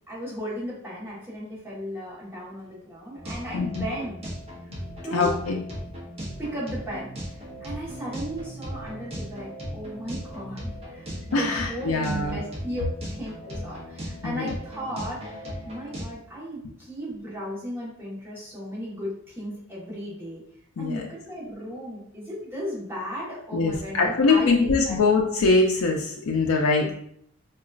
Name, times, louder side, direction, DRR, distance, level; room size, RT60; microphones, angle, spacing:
voice 1, 0.1-4.1 5.0-5.4 6.2-7.1 7.6-15.4 15.6-20.4 20.8-25.0 26.8-26.9, equal, 10° right, -8 dB, 1.2 m, -35 dB
sound 1, 3.1-16.0, equal, 30° right, 0.8 m, -37 dB
voice 2, 5.1-5.6 11.3-12.4 14.2-14.5 20.8-21.0 23.5-26.9, left 3 dB, 80° left, 0 dB, 0.4 m, -23 dB
3.8 x 2.3 x 2.4 m, 0.68 s
head